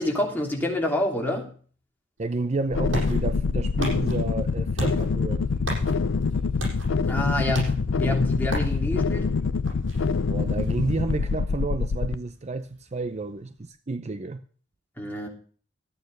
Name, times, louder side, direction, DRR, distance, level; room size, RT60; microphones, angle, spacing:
voice 1, 0.0-1.5 7.1-9.3 15.0-15.3, left 1 dB, 10° left, 3.0 m, -27 dB
voice 2, 2.2-5.5 10.3-14.4, right 3 dB, 35° right, 0.6 m, -30 dB
sound 1, 2.2-13.7, right 1 dB, 75° right, 7.1 m, -38 dB
sound 2, 2.7-12.1, left 4 dB, 85° left, 0.6 m, -25 dB
13.5 x 9.2 x 6.4 m
head